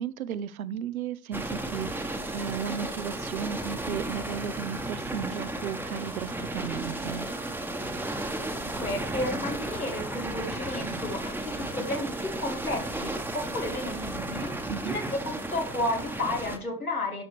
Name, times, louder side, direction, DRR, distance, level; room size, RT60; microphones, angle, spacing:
voice 1, 0.0-7.3 14.7-15.0, right 8 dB, 75° right, 16 dB, 0.7 m, -35 dB
sound 1, 1.3-16.6, right 1 dB, 5° right, 1.1 m, -34 dB
voice 2, 8.8-14.5 14.8-17.2, left 1 dB, 90° left, 1 dB, 2.1 m, -32 dB
11.0 x 6.3 x 3.3 m, 0.40 s
figure-of-eight pair, 70°, 43 cm